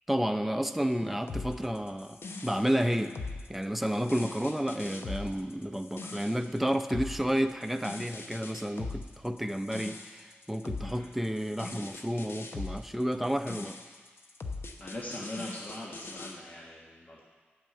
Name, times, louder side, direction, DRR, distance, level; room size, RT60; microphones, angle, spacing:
voice 1, 0.1-3.2 3.5-13.8, equal, 5° right, 7 dB, 0.6 m, -31 dB
sound 1, 1.3-16.4, left 3 dB, 75° left, 0.8 m, -41 dB
voice 2, 14.8-17.2, left 1 dB, 45° left, -3 dB, 1.3 m, -41 dB
8.8 x 6.4 x 7.9 m, 1.4 s
wide cardioid pair, 65°, 4 cm